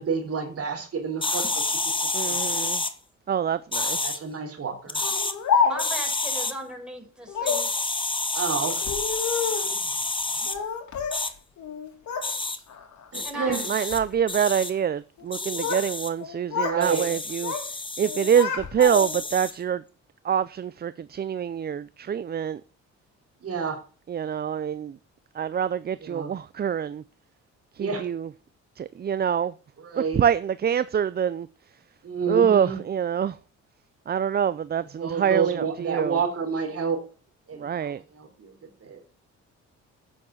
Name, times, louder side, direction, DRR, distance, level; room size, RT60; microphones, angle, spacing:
voice 1, 0.0-1.8 2.3-2.7 3.9-5.0 8.3-8.8 9.7-9.8 10.4-10.5 13.1-13.7 16.6-17.1 23.4-23.8 26.0-26.3 27.8-28.0 29.8-30.2 32.0-32.8 35.0-37.0 37.5-38.5 38.8-39.0, right 5 dB, 50° right, 3.9 m, -29 dB
sound 1, 1.2-2.9 3.7-4.2 4.9-5.3 5.8-6.5 7.5-10.6 11.1-11.3 12.2-12.6 13.1-14.0 14.3-14.7 15.3-16.1 16.8-18.4 18.8-19.6, left 3 dB, 15° left, 1.4 m, -29 dB
voice 2, 2.1-2.8 3.3-4.2 13.7-17.5 18.0-19.8 20.2-22.6 24.1-25.0 25.3-27.0 27.8-28.3 28.8-29.5 30.0-31.5 32.3-33.4 34.1-36.2 37.6-38.0, right 8 dB, 35° right, 0.5 m, -25 dB
Speech, 5.0-6.1 7.3-7.7 8.7-9.8 10.5-11.3 11.6-12.3 12.7-13.1 13.7-14.1 15.2-15.9 16.2-16.8 17.1-17.7 18.0-19.3, left 6 dB, 70° left, 2.8 m, -29 dB
voice 3, 5.6-7.7 12.5-12.6 13.2-13.9, right 1 dB, 5° right, 4.9 m, -37 dB
9.1 x 7.3 x 7.2 m
cardioid pair, 90°, 30 cm